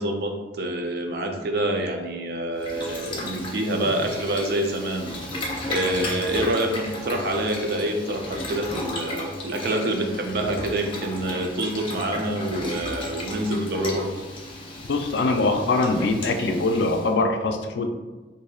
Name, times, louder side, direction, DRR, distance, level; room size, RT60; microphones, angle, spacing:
voice 1, 0.0-5.2 5.7-14.1, right 1 dB, 60° right, 4 dB, 0.5 m, -26 dB
Boiling, 2.6-17.1, left 1 dB, 30° left, 0.7 m, -34 dB
voice 2, 14.9-17.9, left 3 dB, 75° left, 5 dB, 0.4 m, -23 dB
4.2 x 2.7 x 2.3 m, 1.2 s
head